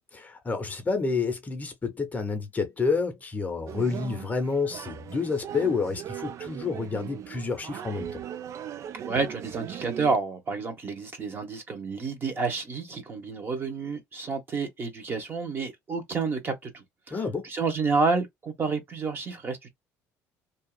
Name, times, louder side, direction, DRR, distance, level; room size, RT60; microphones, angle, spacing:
voice 1, 0.1-8.2 17.1-17.5, left 4 dB, 25° left, 0.7 m, -29 dB
sound 1, 3.7-10.2, right 9 dB, 50° right, 0.3 m, -39 dB
voice 2, 9.0-16.8 17.1-19.7, right 4 dB, 30° right, 1.0 m, -29 dB
2.7 x 2.3 x 2.2 m
supercardioid pair, 105°, 7 cm